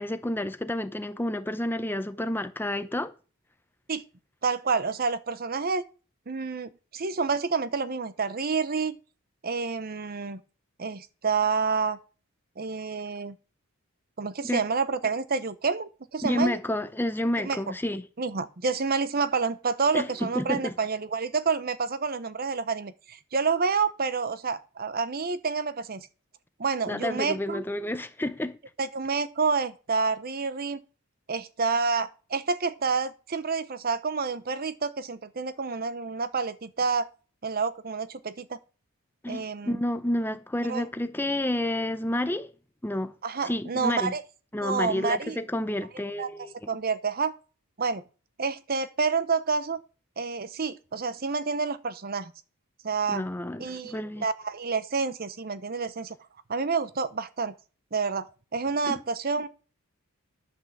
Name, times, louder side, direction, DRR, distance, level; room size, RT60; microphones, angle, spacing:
voice 1, 0.0-3.1 14.4-14.6 16.2-18.0 19.9-20.7 26.9-28.6 39.2-42.5 42.8-43.1 43.4-44.1 44.5-46.5 53.1-54.2 58.9-59.0, left 1 dB, 10° left, 0.6 m, -30 dB
voice 2, 4.4-5.8 6.3-9.0 9.4-10.4 10.8-12.0 12.6-13.4 14.2-16.6 17.4-17.6 18.2-26.1 26.6-27.6 28.8-30.8 31.3-37.1 37.4-38.6 39.3-39.8 40.7-40.9 43.2-44.2 44.6-45.4 46.2-46.3 46.7-47.3 47.8-48.0 48.4-49.8 50.2-52.3 52.8-53.2 53.6-56.2 56.5-57.5 57.9-59.5, right 4 dB, 45° right, 0.7 m, -28 dB
10.5 x 5.8 x 7.1 m
head